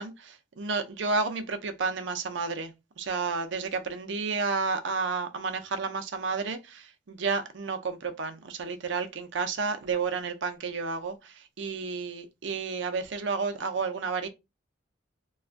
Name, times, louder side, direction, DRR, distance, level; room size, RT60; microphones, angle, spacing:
voice 1, 0.0-14.3, right 4 dB, 65° right, 0.5 m, -31 dB
2.5 x 2.3 x 3.3 m
head